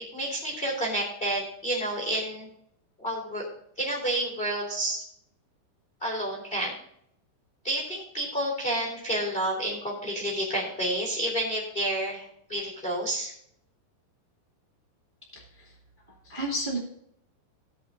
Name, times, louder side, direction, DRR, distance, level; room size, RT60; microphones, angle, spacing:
voice 1, 0.0-2.5 3.0-3.4 3.8-5.0 6.0-6.7 7.6-13.3, right 1 dB, 15° left, -3 dB, 3.1 m, -30 dB
voice 2, 15.3-15.7 16.2-16.8, right 1 dB, 15° right, -2 dB, 2.1 m, -32 dB
17.5 x 7.9 x 2.7 m, 0.71 s
omnidirectional pair, 5.1 m